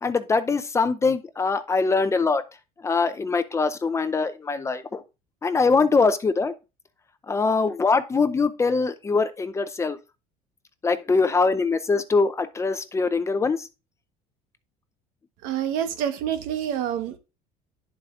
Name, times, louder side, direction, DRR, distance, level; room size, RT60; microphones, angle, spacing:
voice 1, 0.0-2.4 2.8-5.0 5.4-6.5 7.3-10.0 10.8-13.7, left 4 dB, 20° left, 0.6 m, -23 dB
voice 2, 15.4-17.2, right 9 dB, 80° right, 1.1 m, -27 dB
10.5 x 7.5 x 2.5 m
cardioid pair, 120°, 15 cm